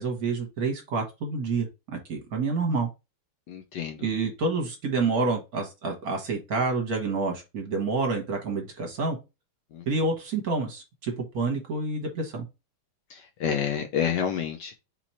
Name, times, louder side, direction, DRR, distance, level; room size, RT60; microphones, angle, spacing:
voice 1, 0.0-2.9 4.0-9.2 9.9-12.4, right 3 dB, 55° right, 1.3 m, -28 dB
voice 2, 3.5-4.0 9.7-9.8 13.4-14.8, left 8 dB, 70° left, 1.1 m, -28 dB
4.1 x 3.0 x 4.2 m
omnidirectional pair, 2.2 m